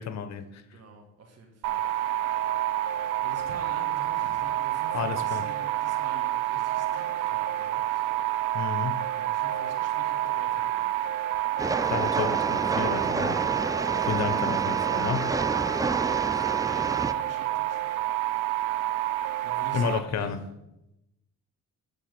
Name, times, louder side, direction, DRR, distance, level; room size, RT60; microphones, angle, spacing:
voice 1, 0.0-0.6 4.9-5.5 8.5-9.1 11.8-13.4 13.7-15.4 19.7-20.4, left 7 dB, 60° left, 0.8 m, -31 dB
voice 2, 0.7-1.8 3.1-8.0 8.8-10.9 13.9-14.2 15.0-17.8 19.4-20.4, right 3 dB, 55° right, 1.4 m, -46 dB
sound 1, 1.6-20.0, right 13 dB, 85° right, 0.6 m, -28 dB
Train, 11.6-17.1, right 3 dB, 10° right, 0.3 m, -30 dB
9.3 x 3.4 x 6.6 m
cardioid pair, 90°, 30 cm